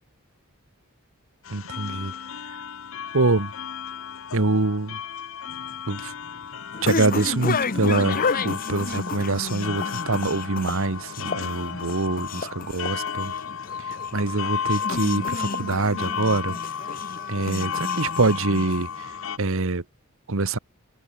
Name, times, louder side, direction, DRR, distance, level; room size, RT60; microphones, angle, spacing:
sound 1, 1.4-19.4, left 7 dB, 65° left, 0.8 m, -33 dB
voice 1, 1.5-2.1 3.1-3.5 4.3-5.0 5.9-6.1 6.8-13.3 14.1-16.6 17.3-18.9 19.4-19.8 20.3-20.6, right 3 dB, 70° right, 1.3 m, -24 dB
sound 2, 5.5-19.1, left 4 dB, 40° left, 1.0 m, -31 dB
head